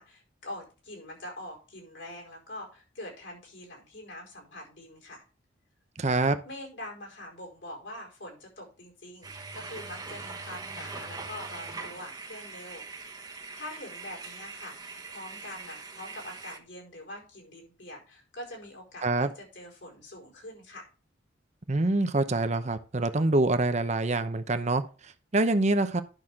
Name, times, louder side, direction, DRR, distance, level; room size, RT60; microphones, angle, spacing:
voice 1, 0.0-5.2 6.4-13.2 13.6-20.9, left 1 dB, 70° left, 0 dB, 4.7 m, -44 dB
voice 2, 6.0-6.4 19.0-19.3 21.7-24.8 25.3-26.0, right 2 dB, 40° right, 10 dB, 0.8 m, -25 dB
sound 1, 9.2-16.6, right 4 dB, 20° right, 1.2 m, -42 dB
11.0 x 6.3 x 3.6 m, 0.34 s
head